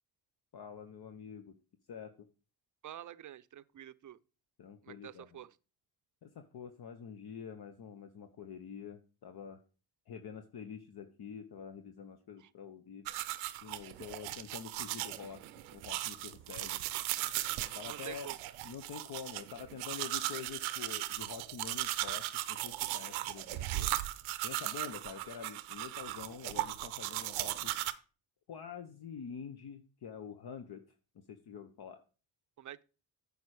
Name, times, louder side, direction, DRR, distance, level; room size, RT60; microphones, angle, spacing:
voice 1, 0.5-1.5 1.9-2.3 4.6-5.4 6.2-9.6 10.1-13.1 13.6-15.4 15.7-16.8 17.7-18.3 18.6-23.9 24.4-27.7 28.5-30.8 31.3-32.0, left 7 dB, 55° left, 1.0 m, -47 dB
voice 2, 2.8-4.2 4.8-5.6 12.4-12.5 17.8-18.4 32.6-32.8, right 11 dB, 40° right, 0.6 m, -48 dB
sound 1, 13.1-27.9, right 16 dB, 90° right, 0.7 m, -37 dB
9.4 x 5.2 x 4.8 m
supercardioid pair, 55°, 47 cm